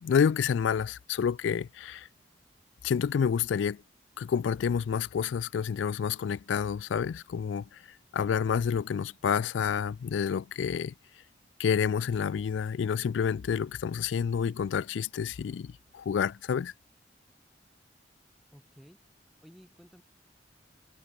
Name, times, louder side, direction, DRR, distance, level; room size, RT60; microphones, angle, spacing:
voice 1, 0.0-2.1 2.8-3.8 4.2-7.8 8.1-10.9 11.6-16.7, left 7 dB, 90° left, 0.3 m, -29 dB
voice 2, 18.5-19.1 19.4-20.0, equal, ahead, 4.1 m, -55 dB
head